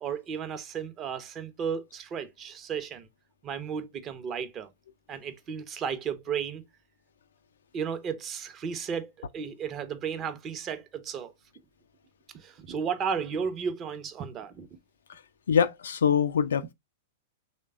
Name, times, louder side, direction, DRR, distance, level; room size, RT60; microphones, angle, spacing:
voice 1, 0.0-3.1 3.4-4.7 5.1-6.6 7.7-11.3 12.3-14.7, right 7 dB, 30° right, 0.6 m, -34 dB
voice 2, 15.5-16.7, left 7 dB, 75° left, 0.3 m, -24 dB
3.3 x 2.2 x 3.4 m
hypercardioid pair, 100°, 0 cm